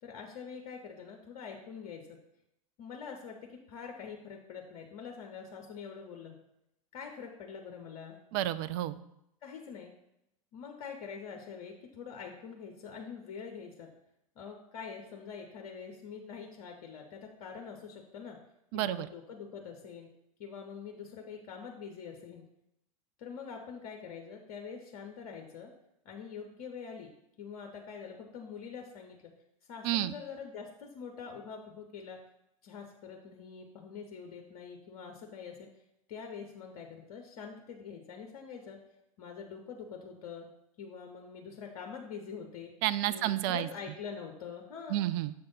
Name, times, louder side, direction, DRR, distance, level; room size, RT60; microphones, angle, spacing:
voice 1, 0.0-2.2 2.8-3.4 3.7-6.4 6.9-8.2 9.4-9.9 10.5-13.9 14.4-18.4 18.7-20.1 20.4-22.5 23.2-25.7 26.0-27.1 27.4-29.3 29.7-32.2 32.6-35.7 36.1-38.8 39.2-40.5 40.8-42.7 43.0-45.0, left 6 dB, 50° left, 3 dB, 0.8 m, -45 dB
voice 2, 8.3-9.0 18.7-19.1 29.8-30.1 42.8-43.7 44.9-45.3, right 14 dB, 40° right, 14 dB, 0.4 m, -30 dB
6.6 x 3.4 x 5.3 m, 0.82 s
figure-of-eight pair, 85°, 18 cm